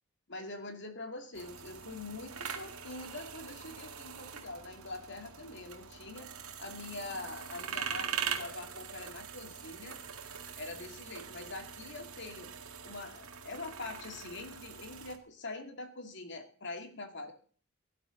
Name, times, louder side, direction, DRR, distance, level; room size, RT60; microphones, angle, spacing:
voice 1, 0.3-6.3 6.6-10.0 10.6-12.5 12.8-17.3, left 2 dB, 55° left, 6 dB, 2.5 m, -44 dB
sound 1, 1.3-15.2, right 7 dB, 90° right, 2.0 m, -43 dB
17.5 x 11.5 x 4.0 m, 0.42 s
head